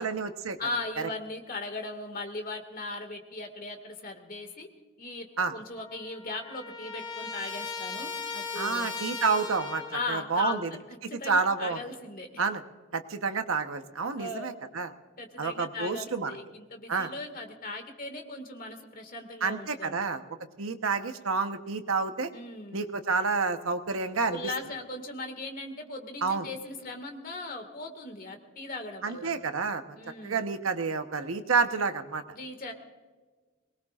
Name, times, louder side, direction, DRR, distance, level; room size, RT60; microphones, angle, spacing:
voice 1, 0.0-0.6 1.0-1.1 5.4-5.5 8.6-9.8 10.1-10.7 11.0-11.8 12.4-12.6 12.9-14.9 15.4-16.3 16.9-17.1 19.4-20.2 20.6-22.3 22.7-24.4 26.2-26.5 29.0-29.8 30.2-32.2, right 4 dB, 70° right, 8 dB, 1.0 m, -29 dB
voice 2, 0.6-4.7 5.0-8.9 9.9-10.8 11.1-12.4 14.2-14.5 15.2-20.1 22.3-22.8 24.3-29.3 30.0-30.4 32.3-32.7, left 2 dB, 40° left, 5 dB, 1.9 m, -38 dB
Trumpet, 5.7-10.1, left 4 dB, 25° left, 3.2 m, -38 dB
23.0 x 20.0 x 2.5 m, 1.4 s
head